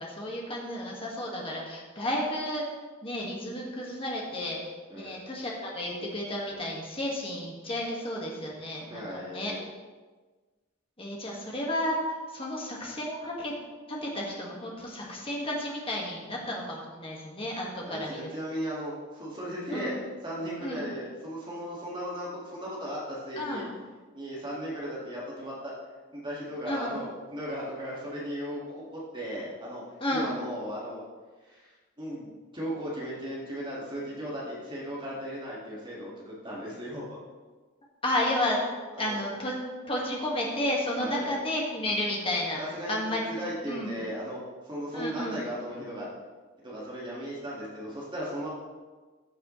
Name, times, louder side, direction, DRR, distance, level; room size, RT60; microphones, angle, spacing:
voice 1, 0.0-2.6 3.0-9.5 11.0-13.5 13.9-18.3 19.7-20.0 20.6-20.8 23.4-23.7 26.7-27.0 30.0-30.3 38.0-38.6 39.0-39.5 39.9-42.6 42.9-43.2 43.7-44.0 44.9-45.4, left 1 dB, 25° left, -2 dB, 1.8 m, -32 dB
voice 2, 8.9-9.6 17.8-19.9 20.2-23.6 24.1-25.7 26.1-27.1 27.3-29.8 30.1-31.0 31.4-37.2 38.9-39.2 41.0-41.3 42.6-46.1 46.6-48.5, equal, 20° right, -6 dB, 2.0 m, -36 dB
14.5 x 6.6 x 3.2 m, 1.3 s
head